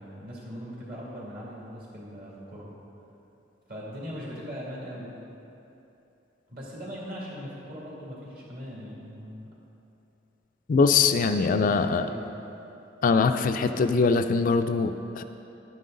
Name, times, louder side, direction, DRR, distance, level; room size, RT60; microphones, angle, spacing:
voice 1, 0.0-2.7 3.7-5.2 6.5-9.5 10.7-12.3, equal, 50° right, -5 dB, 2.6 m, -40 dB
voice 2, 10.7-12.1 13.0-15.2, left 4 dB, 45° left, 8 dB, 0.4 m, -22 dB
11.0 x 9.3 x 3.8 m, 2.8 s
head